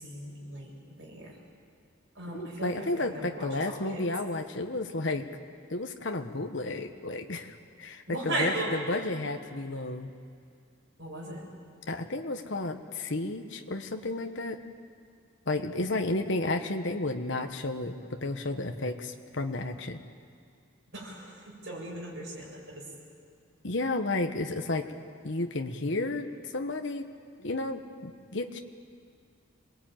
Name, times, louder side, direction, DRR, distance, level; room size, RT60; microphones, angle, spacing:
voice 1, 0.0-1.4 2.1-4.1 8.1-8.7 11.0-11.5 15.7-16.0 20.9-22.8, right 1 dB, 55° right, -3 dB, 7.5 m, -37 dB
voice 2, 2.3-5.3 5.7-10.1 11.9-14.6 15.5-20.0 23.6-24.9 25.2-27.1 27.4-28.6, left 2 dB, 60° left, 5 dB, 1.2 m, -32 dB
27.0 x 19.5 x 9.1 m, 2.3 s
head